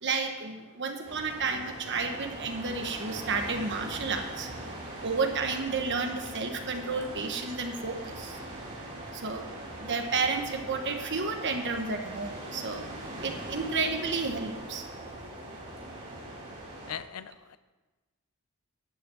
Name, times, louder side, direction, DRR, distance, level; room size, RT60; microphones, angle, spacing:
voice 1, 0.0-4.5 5.0-8.4 9.1-9.4 9.8-12.8 13.2-14.8, right 4 dB, 55° right, 4 dB, 1.3 m, -31 dB
sound 1, 1.0-16.9, right 1 dB, 35° right, 3.4 m, -41 dB
voice 2, 16.9-17.6, left 9 dB, 90° left, 15 dB, 0.5 m, -40 dB
12.0 x 5.9 x 7.8 m, 1.2 s
head